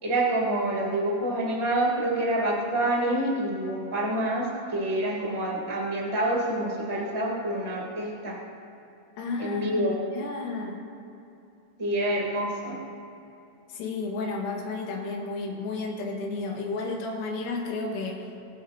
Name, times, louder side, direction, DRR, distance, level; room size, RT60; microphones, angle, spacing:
voice 1, 0.0-8.3 9.4-10.0 11.8-12.8, right 1 dB, 10° right, -5 dB, 2.1 m, -27 dB
voice 2, 9.2-10.8 13.7-18.3, left 3 dB, 80° left, -1 dB, 4.2 m, -32 dB
27.0 x 11.0 x 2.9 m, 2.7 s
omnidirectional pair, 5.9 m